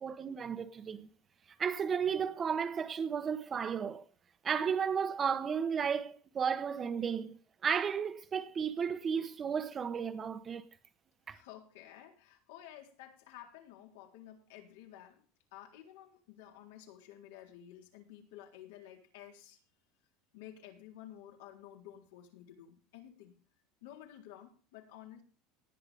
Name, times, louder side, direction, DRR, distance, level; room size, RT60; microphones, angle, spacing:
voice 1, 0.0-1.1 1.6-4.0 4.4-10.6 11.3-11.4, right 7 dB, 20° right, 0.9 m, -33 dB
voice 2, 11.3-15.2 15.5-19.6 20.3-23.4 23.8-25.2, left 11 dB, 80° left, 3.8 m, -52 dB
18.5 x 9.7 x 3.5 m
cardioid pair, 165°, 0 cm